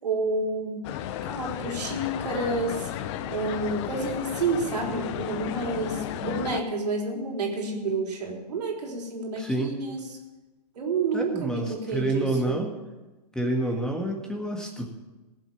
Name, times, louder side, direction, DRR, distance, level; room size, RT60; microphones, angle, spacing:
voice 1, 0.0-0.9 1.2-2.9 3.3-10.0 10.8-12.6, right 3 dB, 70° right, 1 dB, 3.6 m, -29 dB
sound 1, 0.8-6.6, left 11 dB, 45° left, 0.8 m, -34 dB
voice 2, 9.4-9.7 11.1-12.8 13.4-14.9, right 1 dB, 5° left, 2 dB, 1.8 m, -28 dB
18.0 x 7.4 x 7.2 m, 1.1 s
hypercardioid pair, 120°, 21 cm